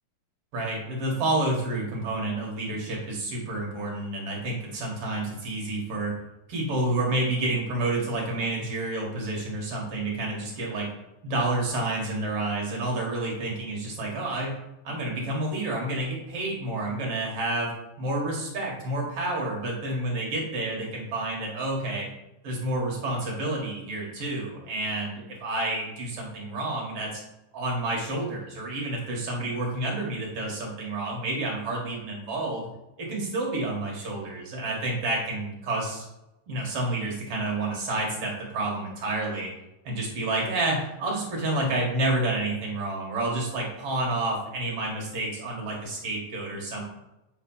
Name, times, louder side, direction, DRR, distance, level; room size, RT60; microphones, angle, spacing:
voice 1, 0.5-6.1 6.5-10.9 11.2-22.1 22.4-27.2 27.5-32.7 33.0-36.0 36.5-39.5 39.8-46.8, right 2 dB, 50° right, -2 dB, 2.4 m, -29 dB
8.1 x 4.1 x 5.5 m, 0.93 s
omnidirectional pair, 3.9 m